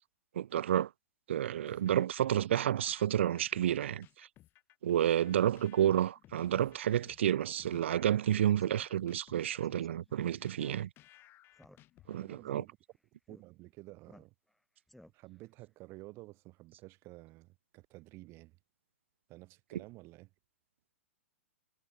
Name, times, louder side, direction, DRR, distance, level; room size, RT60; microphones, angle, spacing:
voice 1, 0.3-0.9 1.3-4.3 4.8-10.9 12.1-12.6, right 11 dB, 60° right, 0.7 m, -30 dB
sound 1, 1.7-12.5, left 15 dB, 30° left, 4.1 m, -61 dB
Speech synthesizer, 5.5-5.7 6.1-6.2 6.5-6.8 7.1-7.2 7.7-7.9 8.2-8.3 8.6-8.9 9.6-9.9 10.6-11.2 11.5-12.1 12.5-12.7 13.3-13.4 14.1-14.6 14.9-15.4, left 1 dB, ahead, 7.6 m, -57 dB
voice 2, 12.1-12.8 13.3-14.3 15.1-18.6 19.3-20.3, right 20 dB, 35° right, 7.6 m, -51 dB
figure-of-eight pair, 105°, 7 cm